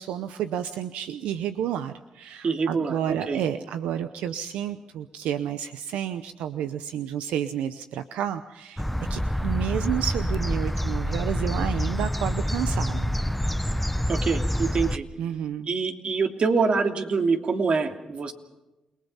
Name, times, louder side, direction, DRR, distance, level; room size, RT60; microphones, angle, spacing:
voice 1, 0.0-8.8 9.1-13.1 15.2-15.7, right 10 dB, 90° right, 10 dB, 0.8 m, -30 dB
voice 2, 2.4-3.4 14.1-15.1 15.7-18.3, right 4 dB, 55° right, 4 dB, 2.9 m, -25 dB
sound 1, 8.8-15.0, equal, 5° left, 1.1 m, -27 dB
29.0 x 20.0 x 5.6 m, 1.0 s
supercardioid pair, 55°, 2 cm